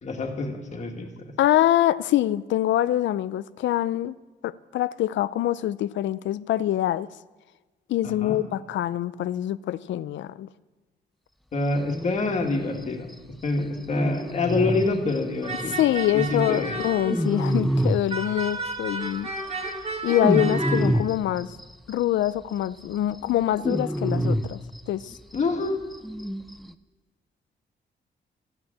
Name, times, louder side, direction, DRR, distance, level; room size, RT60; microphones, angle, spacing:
voice 1, 0.0-1.1 8.0-8.4 11.5-13.1 13.4-15.8 16.1-16.8 25.3-25.8, left 3 dB, 40° left, 2 dB, 1.8 m, -26 dB
voice 2, 1.4-4.2 4.4-7.1 7.9-10.5 15.8-19.3 20.0-21.6 21.9-24.6 24.9-25.1, left 13 dB, 85° left, 17 dB, 0.5 m, -24 dB
sound 1, 11.9-12.5 12.8-12.9 13.1-13.2 13.5-13.6 13.8-16.3 16.5-18.8 19.0-21.9 22.3-22.4 22.7-25.4 25.6-25.7 25.9-26.7, equal, ahead, 0.4 m, -27 dB
sound 2, 15.4-17.5 18.1-20.8, right 3 dB, 35° right, 1.4 m, -33 dB
14.5 x 8.8 x 8.6 m, 1.2 s
wide cardioid pair, 180°, 19 cm